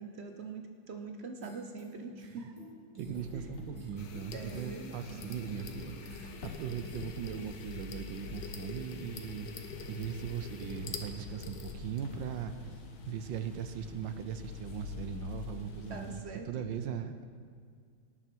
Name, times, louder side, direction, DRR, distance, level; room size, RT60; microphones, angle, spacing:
voice 1, 0.0-2.5 3.3-3.5 4.3-5.3 15.9-17.0, right 4 dB, 55° right, 5 dB, 0.7 m, -44 dB
sound 1, 1.4-7.6, right 2 dB, 15° right, 3.9 m, -52 dB
sound 2, 3.0-16.2, left 5 dB, 80° left, 2.0 m, -46 dB
voice 2, 3.0-12.5 13.1-17.2, right 8 dB, 70° right, 9 dB, 1.4 m, -39 dB
sound 3, 4.0-12.4, left 5 dB, 65° left, 1.5 m, -47 dB
18.0 x 9.2 x 4.5 m, 2.1 s
omnidirectional pair, 2.2 m